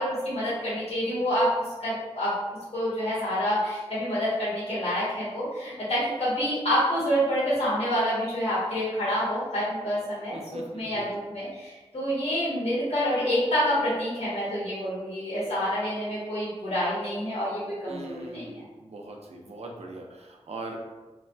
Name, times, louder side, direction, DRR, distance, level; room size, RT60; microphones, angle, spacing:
voice 1, 0.0-2.4 2.7-18.6, equal, 75° left, -9 dB, 1.3 m, -27 dB
voice 2, 10.3-11.1 17.9-20.8, right 2 dB, 85° right, 1 dB, 0.5 m, -41 dB
3.1 x 2.2 x 2.5 m, 1.2 s
wide cardioid pair, 55°, 11 cm